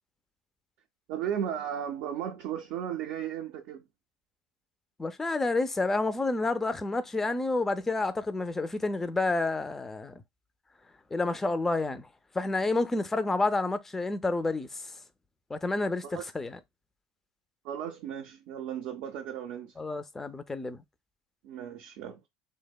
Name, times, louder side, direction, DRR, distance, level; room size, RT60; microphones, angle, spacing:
voice 1, 1.1-3.8 16.0-16.2 17.6-19.7 21.4-22.3, right 9 dB, 65° right, 0.4 m, -35 dB
voice 2, 5.0-10.1 11.1-12.1 12.3-14.7 15.5-16.6 19.8-20.8, left 2 dB, 15° left, 0.3 m, -29 dB
2.7 x 2.1 x 2.2 m
supercardioid pair, 100°, 2 cm